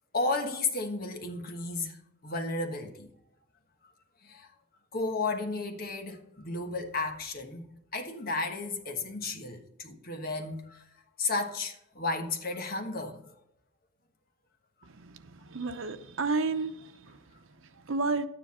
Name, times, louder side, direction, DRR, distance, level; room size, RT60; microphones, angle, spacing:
voice 1, 0.1-3.1 4.2-4.5 4.9-10.8 11.2-13.2 17.7-17.8, left 3 dB, 50° left, 1.4 m, -33 dB
voice 2, 14.9-16.8 17.0-17.2 17.9-18.3, right 3 dB, 90° right, 0.8 m, -31 dB
12.5 x 9.7 x 4.3 m
head